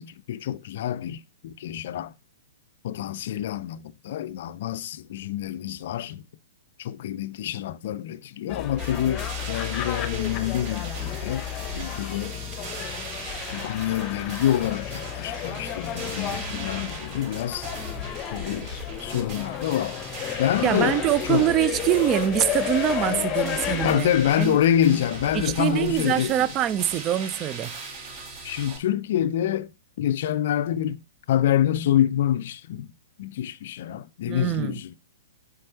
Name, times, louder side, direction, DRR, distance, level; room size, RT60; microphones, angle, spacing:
voice 1, 0.0-2.1 2.8-6.2 6.8-11.5 11.7-12.4 13.5-17.7 18.3-18.7 19.0-20.0 20.4-21.0 21.3-21.5 23.0-23.3 23.8-26.4 28.4-29.7 30.0-31.0 31.3-32.9 33.2-35.0, left 11 dB, 50° left, 0.4 m, -26 dB
sound 1, 8.5-24.0, left 11 dB, 25° left, 0.8 m, -32 dB
sound 2, 8.8-28.8, right 2 dB, 40° right, 3.1 m, -38 dB
voice 2, 20.6-24.1 24.4-24.6 25.3-27.7 34.3-34.7, right 12 dB, 25° right, 0.4 m, -24 dB
7.5 x 5.1 x 2.9 m
figure-of-eight pair, 115°, 0 cm